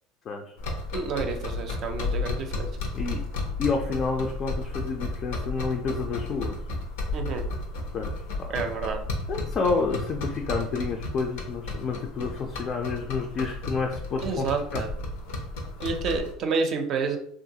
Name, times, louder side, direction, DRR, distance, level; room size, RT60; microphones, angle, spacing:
sound 1, 0.6-16.3, left 2 dB, 90° left, 0.6 m, -33 dB
voice 1, 0.9-2.7 7.1-7.4 8.5-9.0 14.2-14.9 15.8-17.2, right 4 dB, 50° right, 5 dB, 0.5 m, -29 dB
voice 2, 3.6-6.6 7.9-8.1 8.4-8.5 9.3-14.5 14.7-14.8, left 4 dB, 40° left, 2 dB, 0.4 m, -29 dB
2.9 x 2.4 x 2.7 m, 0.70 s
supercardioid pair, 115°, 0 cm